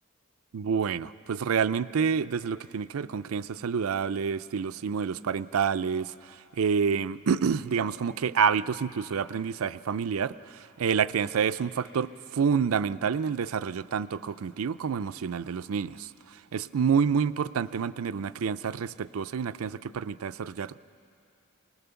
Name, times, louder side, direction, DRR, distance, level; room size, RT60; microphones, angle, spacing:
voice 1, 0.5-16.1 16.5-20.8, right 6 dB, 80° right, 15 dB, 0.4 m, -28 dB
26.0 x 19.5 x 7.0 m, 2.6 s
head